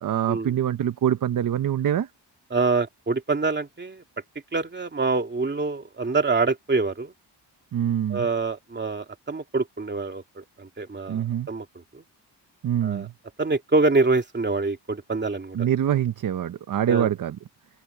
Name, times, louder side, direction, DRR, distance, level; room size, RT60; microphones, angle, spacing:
voice 1, 0.0-2.1 7.7-8.3 11.1-11.5 12.6-13.1 15.5-17.4, right 10 dB, 50° right, 0.6 m, -24 dB
voice 2, 2.5-4.0 4.5-7.1 8.1-11.6 11.9-12.0 12.8-13.1 13.4-15.7 16.9-17.1, right 3 dB, 25° right, 2.7 m, -25 dB
open air
wide cardioid pair, 170°, 43 cm